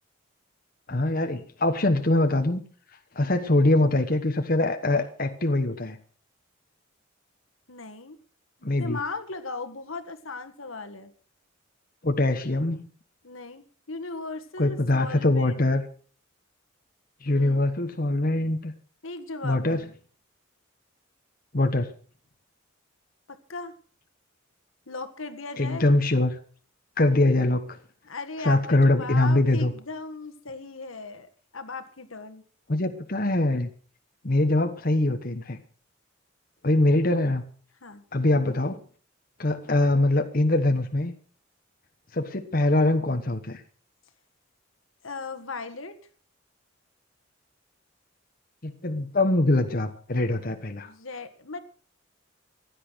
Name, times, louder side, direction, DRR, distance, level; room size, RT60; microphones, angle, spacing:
voice 1, 0.9-2.6 3.1-6.0 8.6-9.0 12.0-12.9 14.6-15.8 17.2-18.7 19.4-19.9 21.5-21.9 25.6-26.4 27.0-27.8 28.4-29.7 32.7-33.7 34.2-35.6 36.6-37.4 38.1-38.8 39.4-41.1 42.1-43.6 48.6-50.9, left 2 dB, 45° left, 6 dB, 1.2 m, -23 dB
voice 2, 7.7-8.2 8.6-11.1 13.2-15.7 17.3-17.6 19.0-19.9 23.3-23.7 24.9-25.9 28.0-32.4 37.8-38.0 45.0-46.0 50.8-51.6, left 3 dB, 80° left, 9 dB, 1.7 m, -37 dB
16.0 x 11.0 x 6.2 m, 0.43 s
head